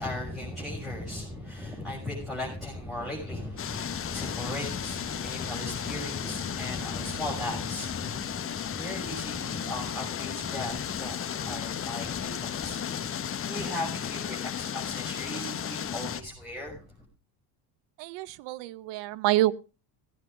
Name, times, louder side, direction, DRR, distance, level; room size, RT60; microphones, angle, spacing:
voice 1, 0.0-16.8, left 1 dB, ahead, -5 dB, 6.6 m, -37 dB
sound 1, 3.6-16.2, left 9 dB, 30° left, 1.0 m, -34 dB
voice 2, 18.0-19.5, right 15 dB, 75° right, 20 dB, 0.9 m, -27 dB
16.5 x 9.7 x 5.1 m, 0.33 s
cardioid pair, 120°, 43 cm